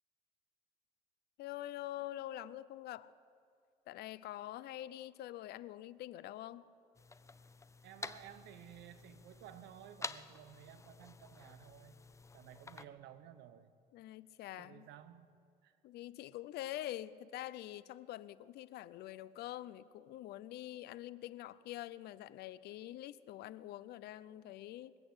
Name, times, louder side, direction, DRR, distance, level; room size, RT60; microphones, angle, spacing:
voice 1, 1.4-3.1 3.9-6.7 13.9-14.9 15.8-25.0, left 14 dB, 75° left, 17 dB, 0.6 m, -45 dB
sound 1, 6.9-12.8, left 4 dB, 15° left, 0.5 m, -50 dB
voice 2, 7.8-12.0 12.3-13.7 14.6-15.3 15.6-15.8, right 11 dB, 80° right, 13 dB, 1.0 m, -55 dB
21.5 x 8.6 x 7.9 m, 2.3 s
cardioid pair, 110°, 17 cm